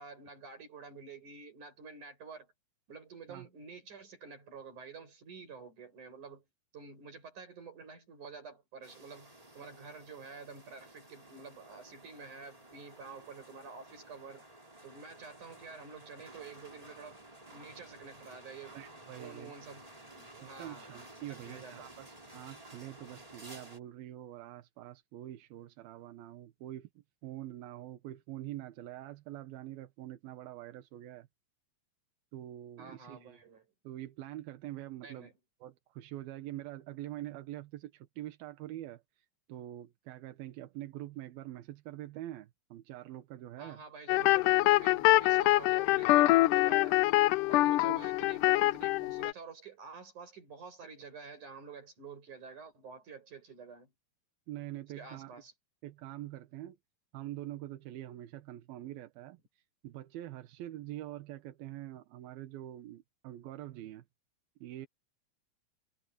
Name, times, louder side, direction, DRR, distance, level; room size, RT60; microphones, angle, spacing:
voice 1, 0.0-2.5 2.9-6.4 6.7-14.5 14.8-17.2 17.5-18.8 19.2-21.9 32.8-33.6 35.0-35.3 43.6-47.0 47.5-53.9 54.9-55.5, right 5 dB, 55° right, 8.5 m, -49 dB
sound 1, 8.8-23.8, right 1 dB, 10° right, 3.4 m, -54 dB
voice 2, 18.7-19.5 20.6-26.9 27.2-31.3 32.3-33.4 33.8-35.3 35.6-43.8 47.9-48.0 54.5-55.3 55.8-56.8 57.1-64.0 64.6-64.9, right 14 dB, 90° right, 3.0 m, -45 dB
sound 2, 44.1-49.3, left 18 dB, 80° left, 1.8 m, -25 dB
omnidirectional pair, 4.1 m